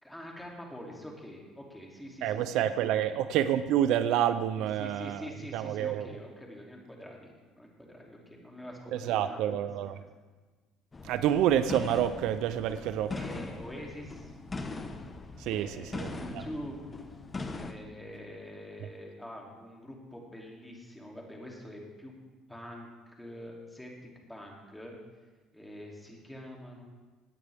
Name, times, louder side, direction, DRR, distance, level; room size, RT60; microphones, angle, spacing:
voice 1, 0.0-3.1 4.6-10.1 13.1-14.3 15.5-16.8 17.6-22.1 22.5-22.9 23.2-23.9 24.3-24.9 25.5-26.8, equal, 5° left, -1 dB, 2.7 m, -45 dB
voice 2, 2.2-6.1 8.9-9.9 11.0-13.1 15.4-16.4, right 10 dB, 70° right, 12 dB, 0.5 m, -28 dB
sound 1, 10.9-17.7, left 3 dB, 25° left, 1.0 m, -40 dB
17.5 x 8.7 x 3.5 m, 1.3 s
supercardioid pair, 90°, 0 cm